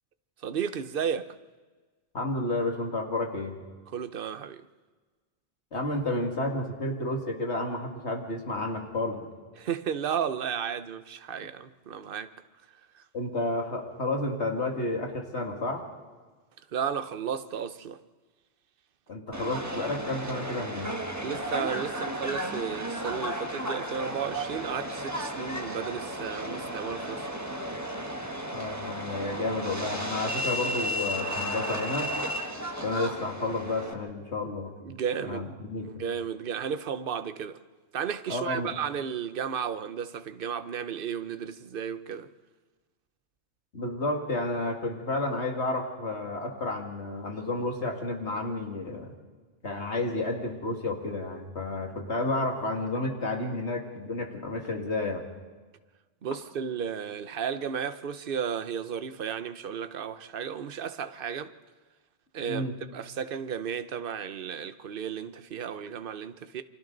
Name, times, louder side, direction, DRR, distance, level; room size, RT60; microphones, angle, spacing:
voice 1, 0.4-1.4 3.9-4.6 9.6-12.3 12.9-13.0 16.7-18.0 21.2-27.3 34.8-35.6 35.8-37.6 37.9-42.3 56.2-61.5 62.3-66.6, right 7 dB, 55° right, 1.0 m, -33 dB
voice 2, 2.1-3.6 5.7-9.3 13.1-15.8 19.1-20.9 28.5-32.1 32.8-34.7 35.2-35.9 38.3-38.7 43.7-49.1 49.6-55.2 62.5-62.8, left 2 dB, 80° left, 2.5 m, -31 dB
Subway metro underground, 19.3-33.9, equal, 15° right, 1.5 m, -34 dB
29.0 x 25.0 x 4.0 m
omnidirectional pair, 1.1 m